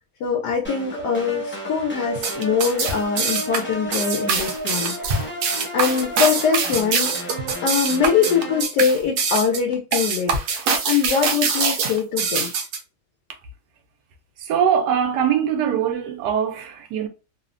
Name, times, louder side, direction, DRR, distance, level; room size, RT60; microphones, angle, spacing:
voice 1, 0.2-5.3 5.7-7.3 7.6-10.4 10.8-12.5, left 6 dB, 90° left, 1.2 m, -23 dB
sound 1, 0.6-8.6, right 1 dB, 10° left, 0.7 m, -32 dB
sound 2, 2.1-12.8, right 5 dB, 70° right, 0.9 m, -24 dB
voice 2, 14.4-17.1, right 8 dB, 90° right, 1.2 m, -22 dB
3.1 x 2.1 x 2.5 m
omnidirectional pair, 1.7 m